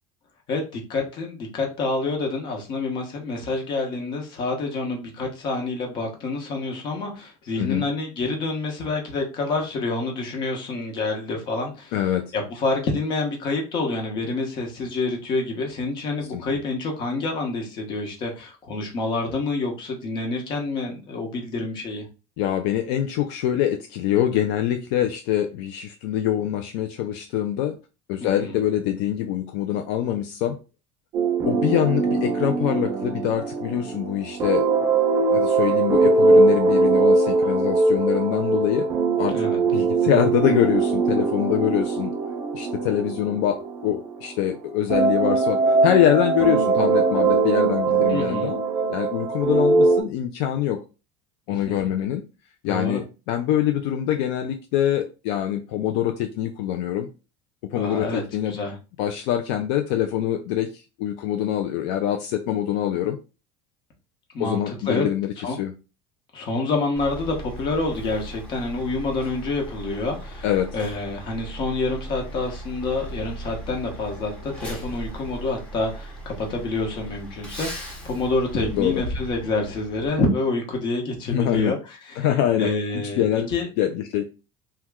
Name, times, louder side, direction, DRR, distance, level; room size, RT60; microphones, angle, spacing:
voice 1, 0.5-11.9 12.3-22.1 28.3-28.5 39.3-39.6 48.1-48.5 51.5-51.9 52.7-53.0 57.8-58.7 64.3-65.1 65.4-65.6 66.3-70.5 70.7-83.7, left 3 dB, 35° left, 2 dB, 0.9 m, -27 dB
voice 2, 11.9-12.3 16.3-16.4 22.4-27.8 28.1-30.6 31.5-34.6 35.3-38.9 39.2-39.4 39.7-42.1 42.5-48.6 48.9-50.8 51.5-52.2 52.6-57.1 57.7-58.6 59.0-63.2 64.4-65.7 70.4-70.7 78.7-79.0 81.3-81.8 82.2-82.7 83.2-83.5 83.8-84.3, left 11 dB, 70° left, 6 dB, 0.4 m, -24 dB
sound 1, 31.1-44.4 44.9-50.0, right 3 dB, 30° right, 0.6 m, -21 dB
Truck, 67.0-80.1, right 1 dB, 10° left, 0.8 m, -37 dB
3.0 x 2.2 x 3.5 m, 0.31 s
cardioid pair, 175°, 13 cm